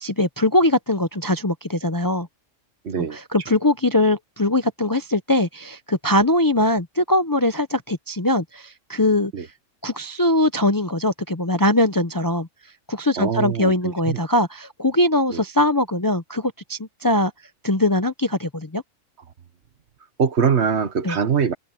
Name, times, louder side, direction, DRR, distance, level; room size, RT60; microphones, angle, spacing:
voice 1, 0.0-2.3 3.0-3.1 3.3-9.3 9.8-12.5 12.9-17.3 17.6-18.8 21.0-21.2, left 1 dB, 25° left, 0.5 m, -21 dB
voice 2, 2.8-3.2 9.3-9.5 13.2-14.2 15.3-15.4 20.2-21.5, right 6 dB, 55° right, 1.5 m, -23 dB
omnidirectional pair, 1.4 m